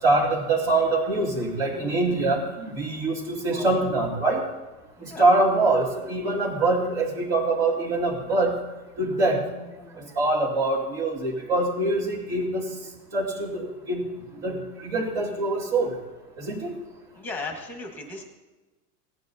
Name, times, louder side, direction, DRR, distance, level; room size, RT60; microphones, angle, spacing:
voice 1, 0.0-4.4 5.0-8.5 9.0-9.4 10.0-12.7 13.1-14.0 14.4-15.9 16.4-16.8, right 2 dB, 50° right, -7 dB, 2.6 m, -24 dB
voice 2, 17.1-18.2, left 3 dB, 5° left, 2 dB, 1.2 m, -36 dB
18.0 x 10.5 x 2.7 m, 1.1 s
supercardioid pair, 170°, 47 cm